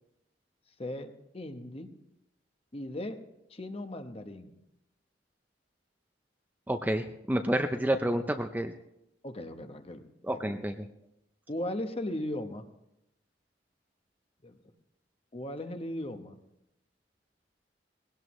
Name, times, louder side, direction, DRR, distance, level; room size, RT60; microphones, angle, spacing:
voice 1, 0.8-1.9 2.7-3.2 3.5-4.5 9.2-10.0 10.3-10.4 11.5-12.6 14.4-14.6 15.3-16.4, left 1 dB, 30° left, 7 dB, 1.0 m, -37 dB
voice 2, 6.7-8.7 10.2-10.9, right 1 dB, 10° right, 6 dB, 0.5 m, -29 dB
20.0 x 17.0 x 3.1 m, 0.84 s
head